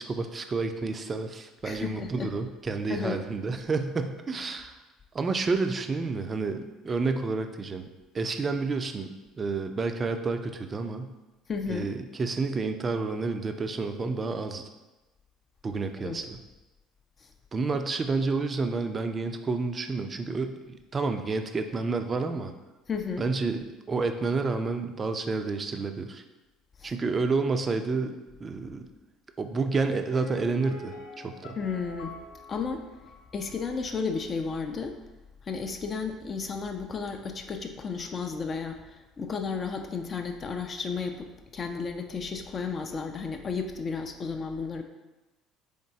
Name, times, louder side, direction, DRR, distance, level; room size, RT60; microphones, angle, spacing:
voice 1, 0.0-4.8 5.1-7.9 8.1-11.1 11.7-14.7 15.6-16.4 17.5-22.5 23.2-26.2 26.8-28.2 28.4-28.9 29.4-31.6, right 4 dB, 30° right, 7 dB, 0.4 m, -30 dB
voice 2, 1.6-2.3 2.9-3.2 11.5-11.9 16.0-16.2 17.2-17.3 22.9-23.2 26.8-26.9 31.5-32.2 32.5-32.8 33.3-35.0 35.4-44.8, left 5 dB, 35° left, 4 dB, 0.4 m, -33 dB
Piano, 30.1-33.9 34.1-34.2, left 2 dB, 70° left, 0.6 m, -46 dB
3.7 x 3.6 x 3.9 m, 1.1 s
figure-of-eight pair, 60°, 0 cm